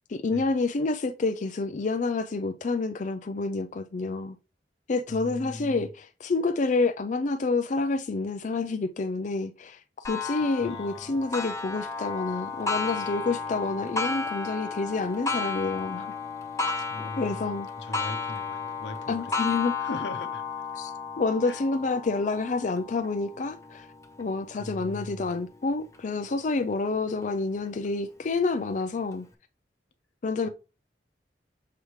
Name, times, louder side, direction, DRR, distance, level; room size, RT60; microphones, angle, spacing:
voice 1, 0.1-4.4 4.9-16.1 17.2-17.7 19.1-19.8 20.8-23.9 24.2-29.3 30.2-30.5, left 3 dB, 45° left, 0.4 m, -28 dB
voice 2, 5.1-5.9 10.6-11.2 16.9-19.4 19.8-20.5 21.4-21.6 24.6-25.3, left 2 dB, 80° left, 1.0 m, -40 dB
Clock, 10.0-25.4 25.9-26.0 26.6-26.7 27.6-27.7, left 4 dB, 20° left, 0.9 m, -33 dB
6.8 x 4.9 x 3.1 m
head